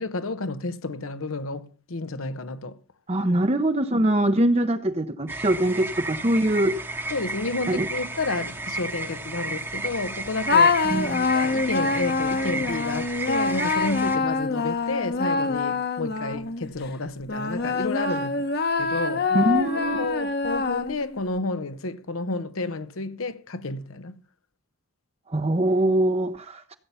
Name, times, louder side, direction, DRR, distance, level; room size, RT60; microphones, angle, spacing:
voice 1, 0.0-2.8 7.1-10.8 11.3-18.5 18.8-24.2, left 3 dB, 80° left, 1.0 m, -31 dB
voice 2, 3.1-7.1 7.7-7.9 10.8-11.3 19.3-20.0 25.3-26.7, right 1 dB, 30° right, 0.7 m, -23 dB
sound 1, 5.3-14.2, right 2 dB, 10° right, 1.0 m, -33 dB
sound 2, 10.5-16.7 17.3-21.2, left 4 dB, 50° left, 1.2 m, -25 dB
16.0 x 8.3 x 5.6 m
head